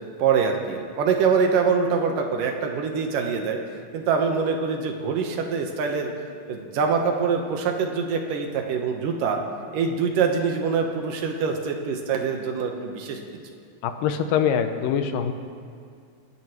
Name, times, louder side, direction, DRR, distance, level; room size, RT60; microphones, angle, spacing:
voice 1, 0.2-3.6 3.9-6.1 6.5-9.4 9.7-13.2, right 5 dB, 80° right, 3 dB, 2.8 m, -24 dB
voice 2, 13.8-15.3, left 8 dB, 90° left, 7 dB, 2.5 m, -23 dB
29.0 x 11.0 x 3.2 m, 2.3 s
omnidirectional pair, 3.8 m